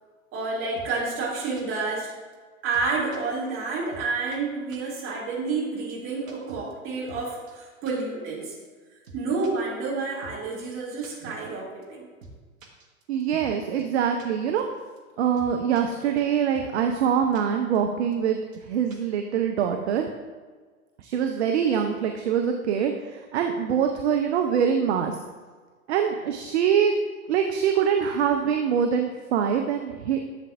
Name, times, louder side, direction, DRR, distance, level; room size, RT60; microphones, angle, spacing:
voice 1, 0.3-2.1 2.6-8.6 9.1-12.1, right 4 dB, 30° right, -4 dB, 2.6 m, -29 dB
sound 1, 0.8-0.9 1.2-1.3 1.6-1.7 2.0-2.1 2.3-2.4 2.7-3.2 3.5-3.6 3.9-4.1 4.3-4.4 4.7-4.8 5.1-5.2 5.5-5.6 5.9-6.0 6.3-7.2 7.5-7.6 7.9-8.0 8.3-8.4 8.6-8.7 9.0-9.5 9.8-9.9 10.2-10.4 10.6-10.7 11.0-11.1 11.4-11.5 11.8-11.9 12.2-12.3 12.6-13.5 13.8-13.9 14.2-14.3 14.6-14.7 15.0-15.1 15.4-15.8 16.2-16.3 16.5-16.7 16.9-17.0 17.3-17.4 17.7-17.8 18.1-18.2 18.5-18.6 18.9-19.1, right 2 dB, 70° right, 1.4 m, -47 dB
voice 2, 13.1-14.7 15.2-20.1 21.0-25.2 25.9-26.9 27.3-30.2, right 8 dB, 50° right, 4 dB, 0.7 m, -24 dB
11.5 x 7.4 x 2.5 m, 1.4 s
figure-of-eight pair, 95°, 42 cm